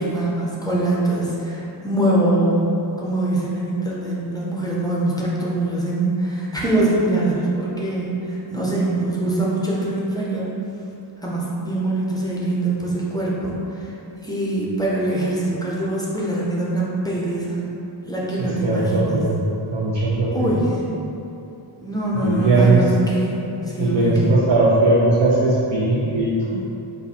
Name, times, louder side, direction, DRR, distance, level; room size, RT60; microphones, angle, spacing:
voice 1, 0.0-10.5 11.2-13.5 14.2-17.7 18.1-19.3 20.3-21.1 21.8-24.3, right 1 dB, 10° left, -6 dB, 0.5 m, -23 dB
voice 2, 18.4-19.4 19.7-20.5 22.1-22.9 23.8-26.6, right 2 dB, 85° right, -7 dB, 0.8 m, -19 dB
4.1 x 2.6 x 4.1 m, 2.9 s
wide cardioid pair, 165°, 44 cm